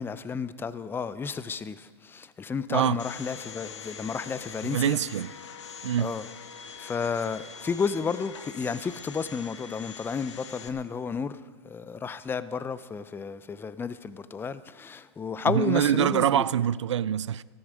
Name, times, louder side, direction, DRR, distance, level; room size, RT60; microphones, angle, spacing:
voice 1, 0.0-5.0 6.0-6.2 6.8-11.4 11.6-16.4, left 5 dB, 15° left, 0.7 m, -32 dB
Domestic sounds home sounds, 3.0-10.7, left 6 dB, 75° left, 1.5 m, -43 dB
voice 2, 4.6-5.3 5.8-6.1 15.4-17.4, right 10 dB, 80° right, 0.5 m, -25 dB
17.5 x 14.5 x 5.1 m
hypercardioid pair, 105°, 15 cm